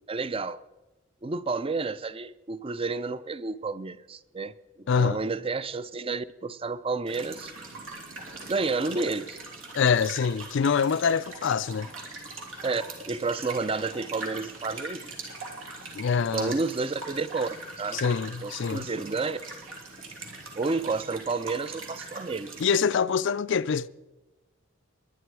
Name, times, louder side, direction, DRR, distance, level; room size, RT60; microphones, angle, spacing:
voice 1, 0.1-0.6 1.2-7.5 8.5-9.4 12.6-15.1 16.3-17.5 17.8-18.0 18.4-19.4 20.6-22.5, right 3 dB, 25° right, 0.5 m, -30 dB
voice 2, 4.9-5.2 9.7-11.9 15.9-16.5 17.9-18.9 22.6-23.9, left 6 dB, 65° left, 0.4 m, -25 dB
sound 1, 7.1-22.8, right 3 dB, 85° right, 3.3 m, -41 dB
22.0 x 10.5 x 4.7 m
head